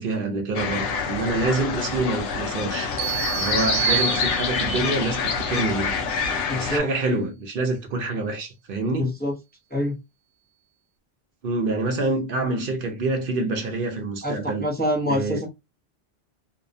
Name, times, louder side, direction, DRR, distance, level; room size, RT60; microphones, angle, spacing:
voice 1, 0.0-2.9 3.4-5.9 6.6-9.1 11.4-14.7 15.1-15.4, right 2 dB, 60° right, 0.7 m, -26 dB
sound 1, 0.5-6.8, left 5 dB, 75° left, 0.8 m, -26 dB
sound 2, 3.0-4.9, right 15 dB, 90° right, 0.9 m, -27 dB
voice 2, 6.5-6.9 9.0-9.3 9.7-10.0 14.2-15.5, left 1 dB, 10° left, 0.5 m, -25 dB
2.7 x 2.1 x 2.5 m
omnidirectional pair, 1.1 m